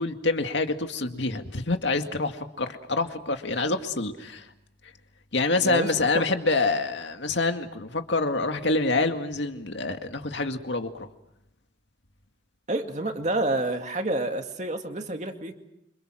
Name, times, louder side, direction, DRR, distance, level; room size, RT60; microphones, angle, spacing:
voice 1, 0.0-4.5 5.3-11.1, left 3 dB, 75° left, 6 dB, 2.1 m, -26 dB
voice 2, 5.6-6.2 12.7-15.5, right 2 dB, 40° right, 5 dB, 2.3 m, -28 dB
27.5 x 26.5 x 6.3 m, 0.83 s
head